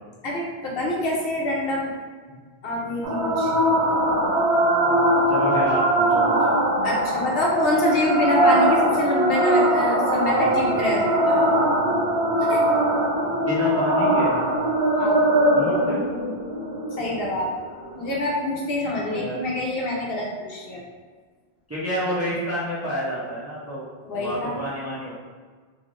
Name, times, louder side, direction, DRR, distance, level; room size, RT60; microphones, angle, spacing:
voice 1, 0.2-1.9 2.6-3.5 6.8-11.4 12.4-12.6 14.9-15.3 17.0-17.5 17.9-20.8 24.0-24.6, left 1 dB, 65° left, -3 dB, 0.8 m, -26 dB
sound 1, 3.0-18.0, right 1 dB, 80° right, 0.9 m, -21 dB
voice 2, 4.8-6.6 13.3-14.5 15.5-16.0 19.0-19.5 21.7-25.1, equal, 20° right, -9 dB, 0.5 m, -30 dB
3.1 x 2.5 x 2.4 m, 1.5 s
omnidirectional pair, 1.1 m